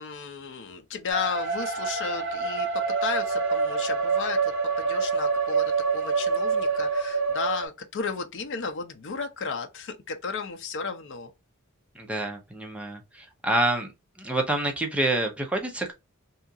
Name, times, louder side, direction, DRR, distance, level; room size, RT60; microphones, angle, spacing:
voice 1, 0.0-11.3, left 5 dB, 55° left, 0.5 m, -34 dB
sound 1, 1.1-7.7, right 4 dB, 55° right, 1.0 m, -26 dB
voice 2, 11.9-13.9 14.2-15.9, right 2 dB, 5° right, 0.5 m, -27 dB
2.8 x 2.3 x 2.6 m
head